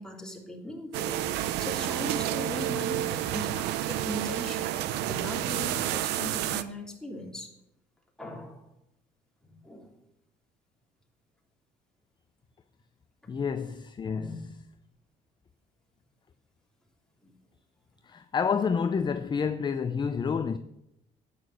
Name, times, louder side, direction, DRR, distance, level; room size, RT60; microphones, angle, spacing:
voice 1, 0.0-4.8 5.1-7.5 8.2-8.6 9.5-9.9 14.1-14.5 17.2-17.3, left 1 dB, 5° left, 3.1 m, -39 dB
sound 1, 0.9-6.6, right 12 dB, 90° right, 0.8 m, -30 dB
voice 2, 13.3-14.4 18.0-20.6, left 6 dB, 25° left, 0.6 m, -29 dB
11.0 x 8.7 x 7.6 m
cardioid pair, 110°, 17 cm